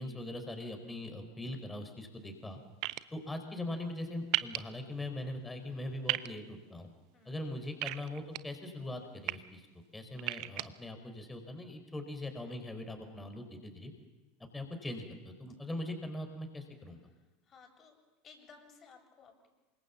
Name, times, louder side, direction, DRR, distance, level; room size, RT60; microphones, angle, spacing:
voice 1, 0.0-2.6 3.1-6.9 7.2-9.6 9.9-13.9 14.4-17.0, left 1 dB, 10° left, 6 dB, 4.8 m, -41 dB
sound 1, 2.8-3.0 4.3-4.6 6.1-6.3 7.8-8.4 9.0-9.3 10.2-10.6, right 20 dB, 50° right, 1.0 m, -32 dB
voice 2, 7.1-7.5 16.9-18.0 18.2-19.5, left 5 dB, 30° left, 3 dB, 7.8 m, -58 dB
28.0 x 25.0 x 7.2 m, 1.1 s
figure-of-eight pair, 80°, 0 cm